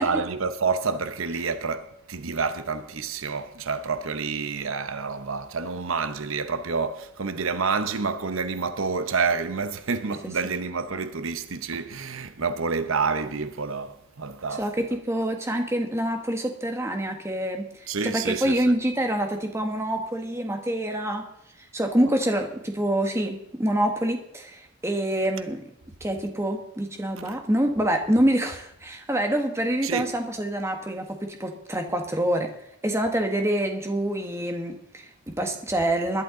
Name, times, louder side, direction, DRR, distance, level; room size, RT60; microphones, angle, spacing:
voice 1, 0.0-14.7 17.9-18.7 22.0-22.1 27.2-27.3 29.8-30.1, right 5 dB, 75° right, 0.9 m, -28 dB
voice 2, 14.6-21.3 21.7-25.6 26.0-32.5 32.8-36.2, right 1 dB, 15° right, 1.4 m, -26 dB
21.0 x 11.5 x 3.8 m
head